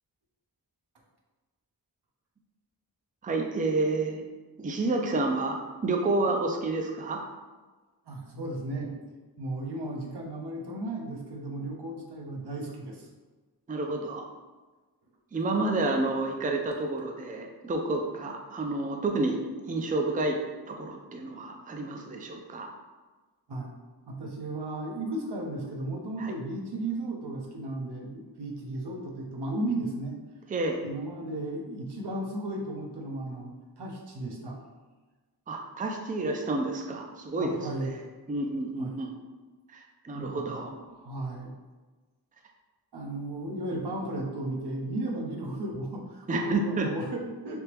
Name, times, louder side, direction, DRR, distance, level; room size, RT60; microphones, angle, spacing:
voice 1, 3.2-4.2 4.6-7.2 13.7-14.2 15.3-19.4 19.6-20.4 20.7-22.7 26.2-26.3 30.5-30.8 35.5-37.9 38.3-39.1 39.7-40.7 46.3-46.9, right 2 dB, 20° right, 2 dB, 0.4 m, -29 dB
voice 2, 8.1-9.0 9.4-13.1 23.5-23.7 24.1-30.1 30.8-34.6 37.4-37.9 38.8-39.0 40.1-41.5 42.9-47.6, right 1 dB, 70° right, -1 dB, 0.8 m, -35 dB
3.5 x 2.9 x 3.0 m, 1.3 s
wide cardioid pair, 55°, 41 cm